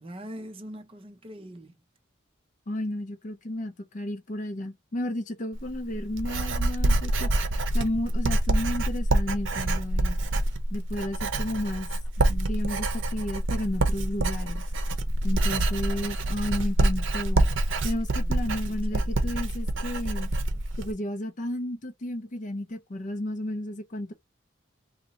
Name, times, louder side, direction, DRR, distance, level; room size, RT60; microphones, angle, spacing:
voice 1, 0.0-1.8 18.2-19.1, equal, 25° right, 0.6 m, -43 dB
voice 2, 2.7-7.3 7.7-10.2 10.7-11.9 12.3-14.6 15.2-17.4 17.8-20.3 20.8-24.1, left 1 dB, 40° left, 0.5 m, -32 dB
Writing, 5.5-20.9, right 1 dB, 70° right, 0.7 m, -26 dB
2.8 x 2.7 x 3.9 m
head